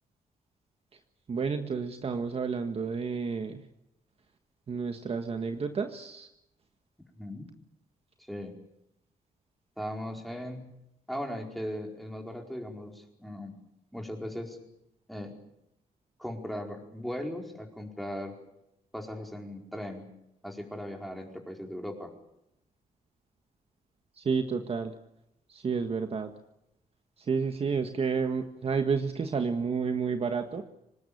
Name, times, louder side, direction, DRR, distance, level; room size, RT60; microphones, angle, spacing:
voice 1, 1.3-3.6 4.7-6.3 24.1-25.0 25.5-26.3 27.2-30.6, right 5 dB, 40° right, 6 dB, 1.6 m, -30 dB
voice 2, 8.2-8.5 9.8-10.7 11.1-13.5 13.9-14.6 15.1-15.3 16.2-18.4 18.9-20.1 20.4-22.1, equal, ahead, 2 dB, 4.7 m, -38 dB
25.5 x 20.0 x 8.6 m, 0.82 s
cardioid pair, 130°, 15 cm